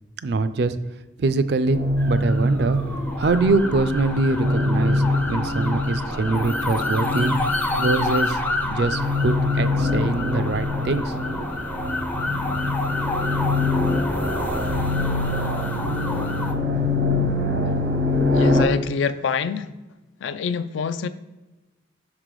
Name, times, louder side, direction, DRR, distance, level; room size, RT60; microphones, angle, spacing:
voice 1, 0.2-0.8 1.2-2.8 3.2-7.4 7.8-8.4 8.7-11.5, right 3 dB, 60° right, 12 dB, 0.4 m, -23 dB
sound 1, 1.6-18.6, left 2 dB, 80° right, 0.9 m, -24 dB
sound 2, 2.0-16.5, left 2 dB, 10° left, 0.4 m, -29 dB
voice 2, 18.3-19.7 20.2-21.1, left 6 dB, 80° left, 12 dB, 0.4 m, -25 dB
6.4 x 3.8 x 4.8 m, 1.1 s
head